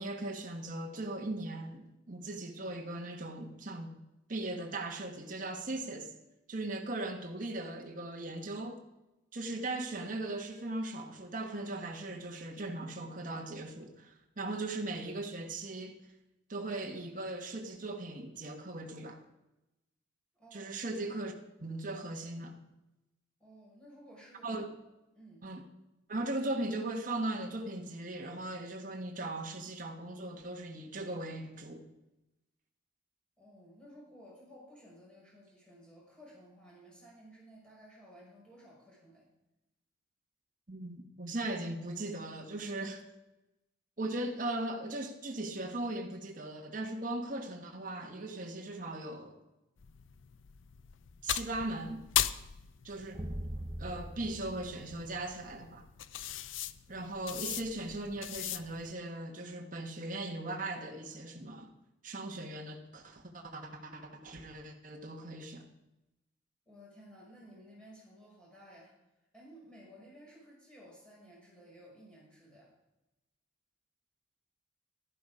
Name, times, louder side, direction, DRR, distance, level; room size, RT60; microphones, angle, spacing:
voice 1, 0.0-3.9 4.3-6.1 6.5-8.8 9.3-16.0 16.5-19.2 20.5-21.3 21.6-22.5 24.4-24.7 25.4-25.6 26.1-31.8 40.7-43.0 44.0-49.4 51.2-52.0 52.8-53.2 53.8-55.8 56.9-61.7 62.0-65.6, right 2 dB, 45° right, 1.4 m, -38 dB
voice 2, 20.4-20.7 23.4-24.5 25.1-25.5 33.4-39.3 66.7-68.9 69.3-72.7, equal, 5° left, 5.7 m, -55 dB
sound 1, 49.8-58.9, left 11 dB, 80° left, 0.6 m, -39 dB
sound 2, 53.1-55.8, right 1 dB, 25° right, 1.0 m, -42 dB
11.5 x 11.0 x 4.9 m
head